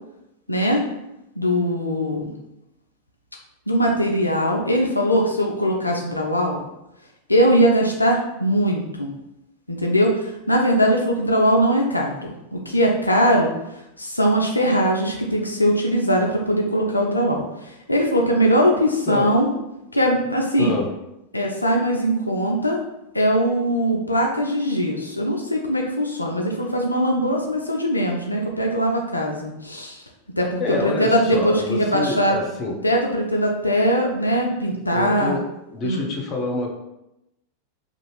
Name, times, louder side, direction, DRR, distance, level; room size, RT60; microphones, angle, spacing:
voice 1, 0.5-0.9 1.4-2.3 3.7-6.6 7.3-9.1 9.7-13.5 14.0-19.5 19.9-20.7 21.3-22.8 23.1-30.0 30.4-32.4 32.8-35.4 35.8-36.1, equal, 85° left, 0 dB, 0.3 m, -21 dB
voice 2, 20.6-20.9 30.6-32.7 34.9-35.4 35.7-36.7, left 2 dB, 30° left, 1 dB, 0.6 m, -26 dB
2.6 x 2.3 x 3.1 m, 0.88 s
figure-of-eight pair, 90°, 0 cm